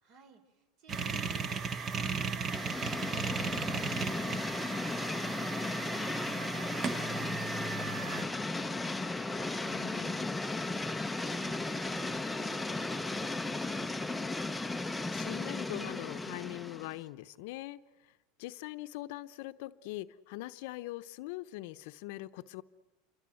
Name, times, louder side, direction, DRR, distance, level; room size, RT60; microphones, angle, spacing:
voice 1, 0.0-8.9 9.9-14.0, right 4 dB, 50° right, 8 dB, 4.5 m, -59 dB
sound 1, 0.9-8.2, right 5 dB, 30° right, 1.4 m, -36 dB
sound 2, 2.5-17.0, left 2 dB, 5° left, 0.9 m, -35 dB
voice 2, 9.6-10.4 14.8-22.6, left 17 dB, 65° left, 11 dB, 0.9 m, -43 dB
28.0 x 24.0 x 7.8 m, 1.2 s
supercardioid pair, 140°, 0 cm